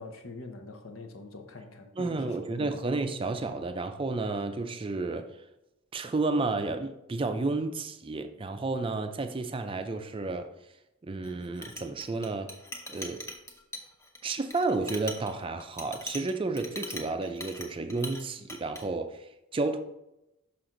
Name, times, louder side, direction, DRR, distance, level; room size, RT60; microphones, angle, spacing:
voice 1, 0.0-2.8, left 2 dB, 70° left, 6 dB, 0.9 m, -44 dB
voice 2, 2.0-5.3 5.9-10.5 11.0-12.6 12.9-13.3 14.2-19.8, right 3 dB, 25° right, 8 dB, 0.4 m, -31 dB
Chink clink, 11.2-18.2 18.5-18.8, left 1 dB, 15° left, 0.7 m, -41 dB
6.1 x 5.8 x 3.8 m, 0.91 s
head